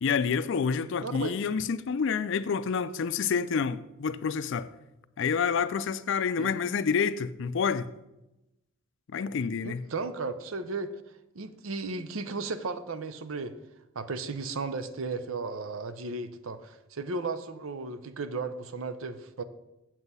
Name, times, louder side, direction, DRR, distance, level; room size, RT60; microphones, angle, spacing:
voice 1, 0.0-4.7 5.2-7.9 9.1-9.8, left 6 dB, 60° left, 0.4 m, -28 dB
voice 2, 1.0-1.4 6.4-6.5 9.6-10.9 11.3-13.6 13.9-19.4, right 3 dB, 75° right, 0.6 m, -35 dB
8.0 x 7.4 x 5.5 m
head